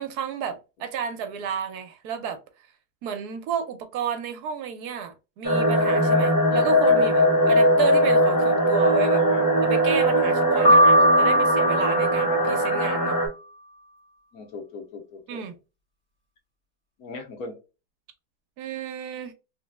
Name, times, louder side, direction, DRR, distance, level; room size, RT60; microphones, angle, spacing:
voice 1, 0.0-2.4 3.0-9.2 9.6-13.2 15.3-15.6 18.6-19.3, right 7 dB, 80° right, 1.2 m, -31 dB
sound 1, 5.4-13.3, equal, 15° left, 0.8 m, -20 dB
voice 2, 8.9-9.5 10.5-11.3 14.3-15.4 17.0-17.6, left 3 dB, 65° left, 1.4 m, -39 dB
Piano, 10.7-12.8, equal, 10° right, 1.1 m, -19 dB
3.2 x 2.9 x 2.2 m
omnidirectional pair, 1.7 m